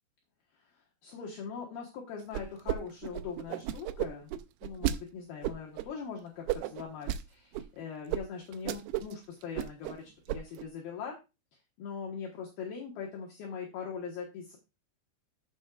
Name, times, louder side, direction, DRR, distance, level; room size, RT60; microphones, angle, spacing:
voice 1, 1.0-4.3 4.6-11.2 11.8-14.6, left 6 dB, 65° left, -1 dB, 2.9 m, -41 dB
sound 1, 2.3-2.8 3.0-5.0 5.4-5.9 6.5-7.2 7.5-7.7 8.1-8.2 8.5-9.1 9.4-10.0 10.3-10.6, right 12 dB, 85° right, 2.2 m, -33 dB
14.0 x 6.2 x 2.4 m, 0.27 s
omnidirectional pair, 5.2 m